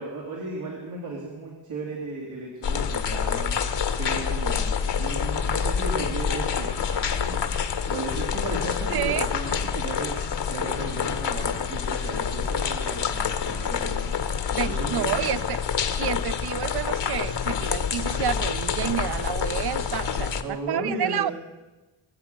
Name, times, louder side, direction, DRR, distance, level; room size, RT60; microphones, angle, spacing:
voice 1, 0.0-3.6 4.0-7.4 7.9-14.2 14.5-15.3 20.4-21.3, right 3 dB, 85° right, -4 dB, 2.8 m, -35 dB
sound 1, 2.6-20.4, left 7 dB, 60° left, 1.2 m, -27 dB
voice 2, 8.9-9.3 14.5-15.6 16.0-21.3, right 10 dB, 55° right, 14 dB, 0.6 m, -29 dB
22.5 x 7.7 x 6.7 m, 1.1 s
cardioid pair, 60°, 48 cm